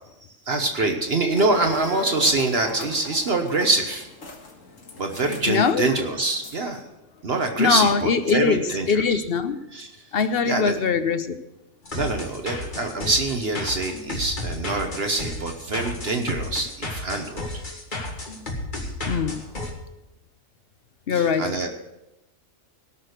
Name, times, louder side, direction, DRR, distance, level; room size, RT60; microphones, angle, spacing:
voice 1, 0.5-4.1 5.0-6.8 7.2-9.2 9.7-9.9 10.4-10.7 11.9-17.6 21.1-21.7, right 2 dB, 55° right, 1.3 m, -25 dB
sound 1, 1.3-6.8, left 2 dB, 85° left, 2.1 m, -39 dB
voice 2, 5.5-5.9 7.6-9.6 10.1-11.4 19.1-19.4 21.1-21.5, left 5 dB, 55° left, 0.9 m, -22 dB
sound 2, 11.8-19.7, left 2 dB, 40° left, 2.0 m, -32 dB
18.0 x 6.3 x 6.5 m
omnidirectional pair, 1.3 m